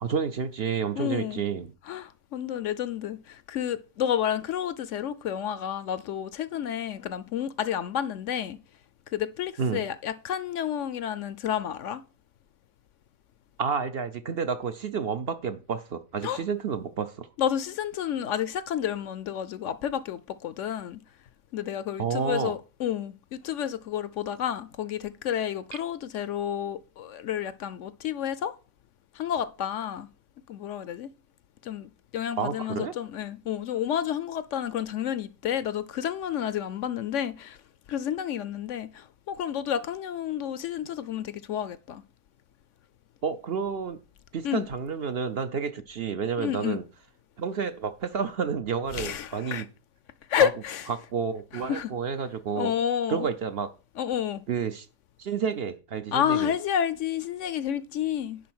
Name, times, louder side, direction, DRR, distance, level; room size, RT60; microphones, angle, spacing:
voice 1, 0.0-1.7 9.6-9.8 13.6-17.3 22.0-22.5 32.4-32.9 43.2-44.0 44.3-46.8 47.4-49.6 50.4-50.5 50.9-52.8 53.1-53.7 54.5-54.9 55.2-56.5, right 6 dB, 55° right, 0.8 m, -30 dB
voice 2, 1.0-1.4 1.9-8.6 9.1-12.0 16.2-16.4 17.4-21.0 21.5-28.5 29.1-30.1 30.5-31.1 31.6-37.6 37.9-42.0 44.4-44.6 46.4-46.8 48.9-49.6 50.3-50.9 51.7-51.9 52.6-53.3 54.0-54.4 56.1-58.4, left 9 dB, 70° left, 0.9 m, -30 dB
10.5 x 4.0 x 6.1 m
omnidirectional pair, 1.5 m